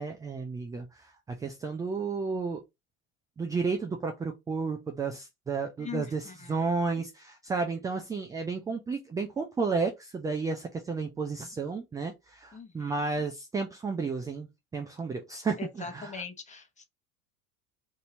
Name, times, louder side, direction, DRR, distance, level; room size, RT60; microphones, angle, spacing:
voice 1, 0.0-2.6 3.4-14.5 14.7-16.2, right 4 dB, 10° right, 0.3 m, -32 dB
voice 2, 5.8-6.7 12.5-13.0 15.6-16.8, left 5 dB, 15° left, 1.0 m, -41 dB
2.7 x 2.7 x 4.2 m
hypercardioid pair, 90°, 42 cm